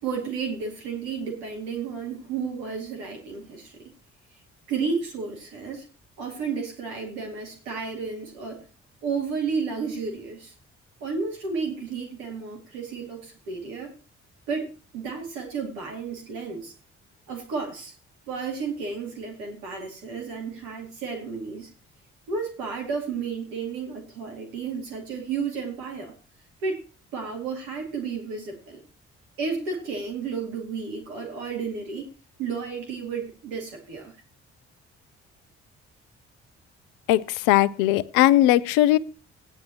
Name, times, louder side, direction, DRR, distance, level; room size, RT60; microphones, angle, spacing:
voice 1, 0.0-3.9 4.7-5.9 6.2-8.7 9.0-10.5 11.0-13.9 14.5-16.7 17.3-17.9 18.3-21.7 22.3-26.1 26.6-26.8 27.1-28.8 29.4-32.1 32.4-34.2, right 5 dB, 75° right, 1 dB, 2.5 m, -32 dB
voice 2, 37.1-39.0, left 14 dB, 70° left, 19 dB, 0.6 m, -19 dB
15.5 x 9.8 x 2.9 m, 0.34 s
hypercardioid pair, 40°, 34 cm